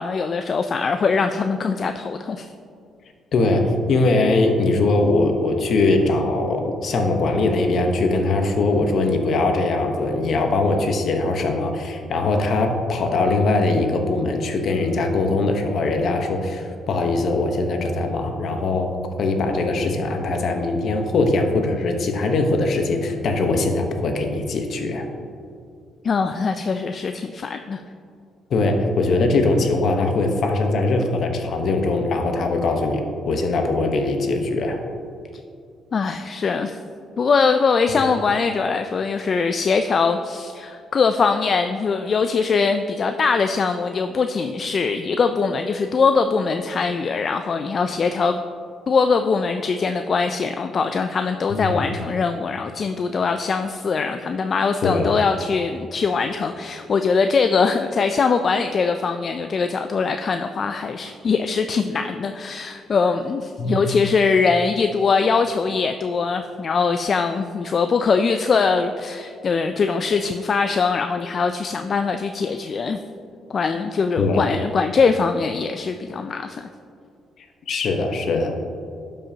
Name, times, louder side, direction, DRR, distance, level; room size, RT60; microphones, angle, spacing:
voice 1, 0.0-2.5 26.0-27.8 35.9-36.8 37.2-48.4 48.9-73.0 73.5-76.6, left 5 dB, 45° left, 7 dB, 0.3 m, -22 dB
voice 2, 3.3-18.9 19.2-25.1 28.5-34.8 37.9-38.0 51.5-51.8 54.8-55.1 63.6-63.8 74.2-74.4 77.7-78.6, left 2 dB, 65° left, 4 dB, 0.9 m, -21 dB
12.0 x 5.4 x 2.8 m, 2.4 s
cardioid pair, 90°, 0 cm